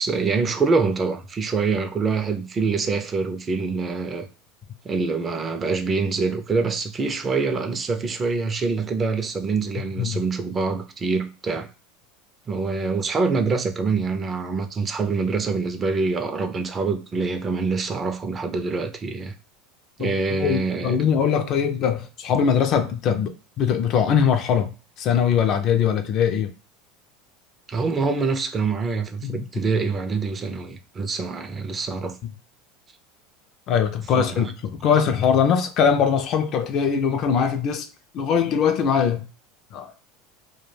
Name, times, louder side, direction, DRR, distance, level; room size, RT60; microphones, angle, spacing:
voice 1, 0.0-4.3 4.8-11.7 12.5-19.3 20.0-21.0 27.7-32.2 34.1-34.5, right 4 dB, 20° right, 0.4 m, -25 dB
voice 2, 20.0-24.7 25.0-26.5 29.2-29.4 32.2-32.3 33.7-37.9 38.1-39.2 39.7-39.9, left 7 dB, 45° left, 0.4 m, -21 dB
2.2 x 2.1 x 3.2 m
supercardioid pair, 135°, 0 cm